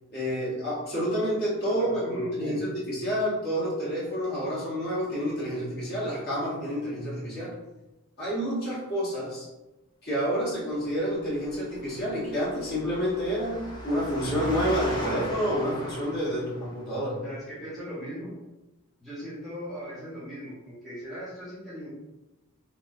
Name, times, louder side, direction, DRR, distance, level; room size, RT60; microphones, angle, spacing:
voice 1, 0.1-7.6 8.2-9.5 10.0-17.2, equal, 45° left, -8 dB, 1.3 m, -29 dB
voice 2, 1.8-2.6 17.2-18.3 19.0-21.9, equal, ahead, -11 dB, 0.8 m, -39 dB
Engine, 11.2-16.8, equal, 20° left, 0.4 m, -38 dB
3.2 x 2.1 x 2.6 m, 1.0 s
head